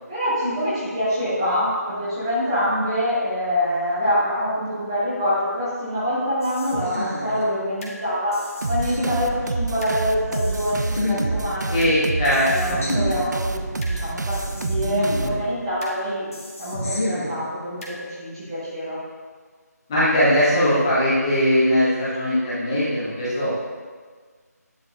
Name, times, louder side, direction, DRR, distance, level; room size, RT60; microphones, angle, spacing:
voice 1, 0.1-11.7 12.5-16.3 16.6-19.0 22.7-22.8, equal, 15° right, -10 dB, 1.2 m, -25 dB
sound 1, 6.4-8.0 8.3-10.0 10.3-12.0 12.3-14.0 14.3-16.0 16.3-18.0, left 1 dB, 55° left, 1.7 m, -30 dB
sound 2, 8.6-15.8, right 3 dB, 85° right, 0.4 m, -28 dB
voice 2, 11.7-12.8 19.9-23.5, equal, 15° left, -12 dB, 1.3 m, -20 dB
10.0 x 3.7 x 2.5 m, 1.5 s
figure-of-eight pair, 170°, 9 cm